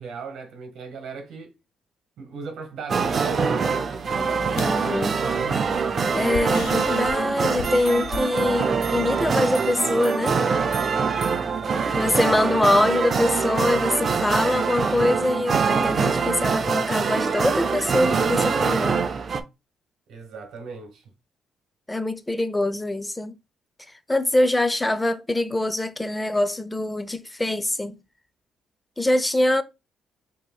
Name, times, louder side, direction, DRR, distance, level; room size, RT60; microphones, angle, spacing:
voice 1, 0.0-1.6 2.2-5.9 11.4-12.6 20.1-21.0, right 4 dB, 75° right, 1.2 m, -37 dB
sound 1, 2.9-19.4, right 5 dB, 45° right, 0.5 m, -24 dB
sound 2, 3.9-9.2, left 6 dB, 90° left, 0.4 m, -40 dB
voice 2, 4.6-5.2 6.1-10.4 12.0-18.9 21.9-23.4 24.1-28.0 29.0-29.6, left 1 dB, 15° left, 0.5 m, -24 dB
5.9 x 2.9 x 2.3 m
cardioid pair, 90°, 0 cm